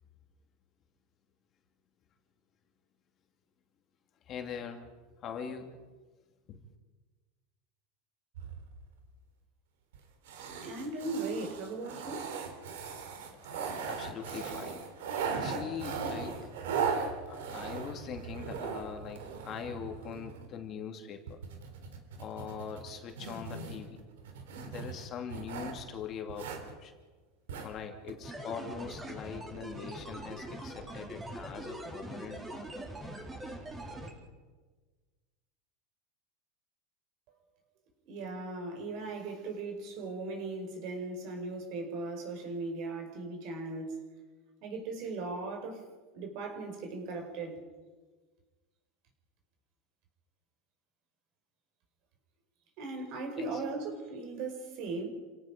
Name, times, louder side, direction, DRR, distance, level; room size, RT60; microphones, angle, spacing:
voice 1, 4.2-4.9 5.2-5.8 6.5-6.6 13.3-14.8 15.3-16.5 17.3-21.4 22.2-24.0 24.6-27.0 27.6-33.2 53.3-53.6, left 7 dB, 35° left, 4 dB, 2.5 m, -42 dB
sound 1, 8.3-9.0 9.9-10.0 10.3-20.5 21.3-25.8 26.3-26.7 27.5-27.7 28.1-28.2, right 5 dB, 90° right, 3.6 m, -38 dB
voice 2, 10.6-12.3 38.1-44.0 44.6-45.8 46.1-47.6 52.8-55.1, right 3 dB, 55° right, 4 dB, 5.4 m, -38 dB
sound 2, 28.2-34.1, right 1 dB, 15° right, 4.2 m, -42 dB
29.0 x 17.5 x 5.2 m, 1.4 s
supercardioid pair, 135°, 0 cm